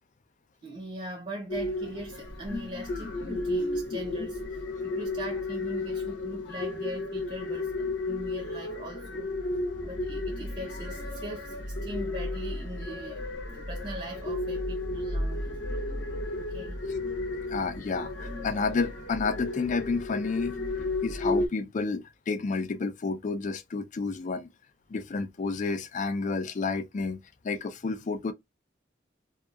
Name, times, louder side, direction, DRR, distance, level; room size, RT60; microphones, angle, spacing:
voice 1, 0.6-9.3 9.8-13.3 13.5-15.6 16.5-16.8, right 1 dB, 35° right, 0.7 m, -41 dB
sound 1, 1.5-21.5, left 2 dB, 90° left, 0.8 m, -33 dB
voice 2, 17.5-20.6 21.0-24.5 24.9-27.2 27.4-28.3, left 4 dB, 40° left, 0.4 m, -30 dB
2.7 x 2.3 x 2.3 m
head